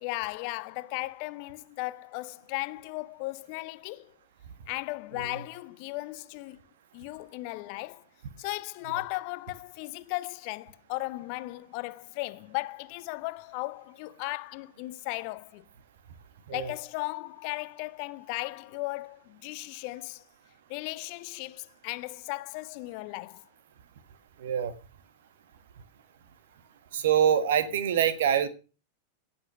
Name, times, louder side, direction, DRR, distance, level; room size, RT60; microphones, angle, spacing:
voice 1, 0.0-4.1 4.7-6.6 6.9-8.0 8.4-15.6 16.5-20.2 20.7-23.4, left 21 dB, 45° left, 0.5 m, -36 dB
voice 2, 24.4-24.7 26.9-28.5, right 9 dB, 55° right, 1.5 m, -25 dB
17.0 x 6.0 x 6.2 m
figure-of-eight pair, 90°, 0 cm